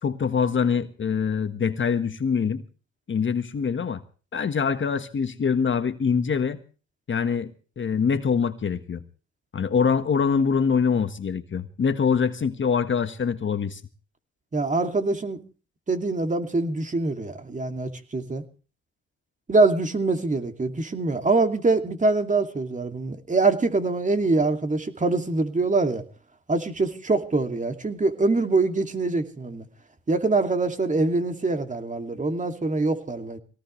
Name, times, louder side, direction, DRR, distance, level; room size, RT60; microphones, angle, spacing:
voice 1, 0.0-2.6 3.1-4.0 4.3-6.6 7.1-7.5 7.8-9.0 9.5-13.8, left 6 dB, 40° left, 1.5 m, -24 dB
voice 2, 14.5-15.4 15.9-18.4 19.5-26.0 26.5-29.7 30.1-33.4, right 3 dB, 25° right, 2.5 m, -24 dB
22.0 x 18.0 x 3.2 m
cardioid pair, 90°, 30 cm